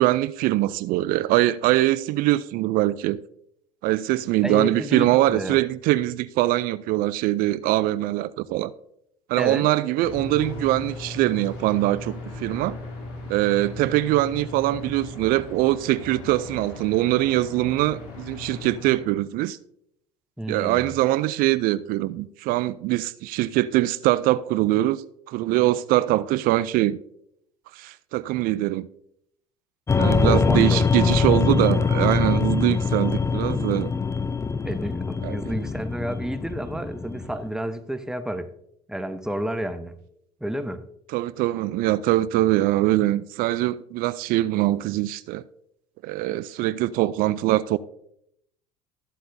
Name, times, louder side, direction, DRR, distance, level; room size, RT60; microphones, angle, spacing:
voice 1, 0.0-3.2 3.8-8.7 9.3-12.8 13.3-19.6 20.5-25.0 25.3-27.0 27.7-28.9 30.0-33.9 35.2-35.4 41.1-45.4 46.0-47.8, right 16 dB, 60° right, 0.4 m, -23 dB
voice 2, 4.4-5.6 9.4-9.7 20.4-21.0 30.2-30.9 34.6-38.5 38.9-40.0 40.4-40.8, right 1 dB, 5° right, 0.8 m, -30 dB
sound 1, 10.0-19.1, left 2 dB, 70° left, 2.5 m, -38 dB
sound 2, 29.9-37.5, left 5 dB, 15° left, 0.4 m, -23 dB
13.5 x 7.7 x 2.7 m
hypercardioid pair, 75°, 17 cm